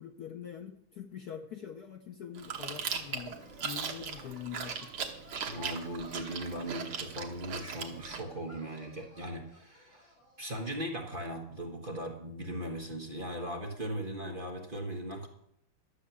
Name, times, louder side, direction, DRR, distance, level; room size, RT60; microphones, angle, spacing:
voice 1, 0.0-4.9, left 9 dB, 65° left, 5 dB, 1.0 m, -44 dB
sound 1, 2.4-10.5, left 1 dB, 20° left, 5.8 m, -57 dB
Chewing mastication, 2.4-8.2, right 6 dB, 80° right, 2.0 m, -39 dB
voice 2, 5.5-10.1 10.4-15.3, equal, 30° right, 1 dB, 1.2 m, -38 dB
12.0 x 7.3 x 7.0 m, 0.76 s
omnidirectional pair, 2.3 m